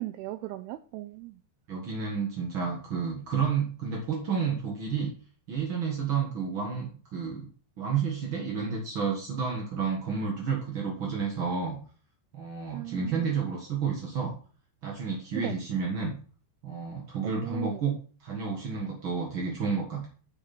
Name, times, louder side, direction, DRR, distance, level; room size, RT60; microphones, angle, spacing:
voice 1, 0.0-1.3 12.7-13.2 15.4-15.6 17.2-17.8, right 17 dB, 85° right, 2.2 m, -37 dB
voice 2, 1.7-5.1 5.5-7.5 7.8-11.8 12.3-14.3 14.8-16.2 16.6-17.9 18.2-20.1, right 5 dB, 55° right, 1.4 m, -30 dB
8.6 x 8.5 x 4.3 m
omnidirectional pair, 5.1 m